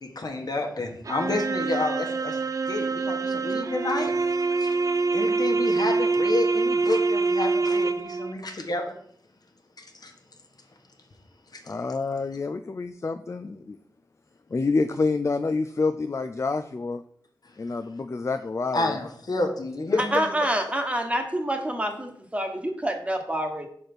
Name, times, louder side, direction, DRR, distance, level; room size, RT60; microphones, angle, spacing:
voice 1, 0.0-2.4 2.7-4.1 4.6-4.7 5.1-8.9 9.8-10.1 11.5-11.6 18.7-20.3, left 2 dB, 60° left, 2 dB, 1.3 m, -30 dB
sound 1, 1.1-8.3, right 3 dB, 50° right, 0.4 m, -25 dB
voice 2, 11.6-13.8 14.5-17.0 17.6-19.0 19.9-20.0, left 3 dB, 40° left, 9 dB, 0.4 m, -27 dB
voice 3, 20.0-23.7, right 1 dB, 15° right, 4 dB, 1.2 m, -27 dB
5.1 x 4.2 x 6.0 m, 0.64 s
wide cardioid pair, 60°, 7 cm